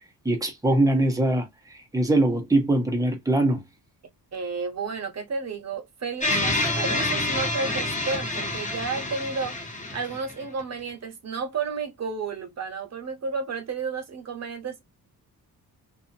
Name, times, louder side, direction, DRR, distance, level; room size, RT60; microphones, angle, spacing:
voice 1, 0.2-1.5 1.9-3.6, right 1 dB, 10° right, 0.8 m, -22 dB
voice 2, 4.3-9.6 9.9-14.8, right 4 dB, 45° right, 1.0 m, -32 dB
sound 1, 6.2-10.6, left 2 dB, 20° left, 1.3 m, -27 dB
2.5 x 2.4 x 2.7 m
cardioid pair, 115°, 37 cm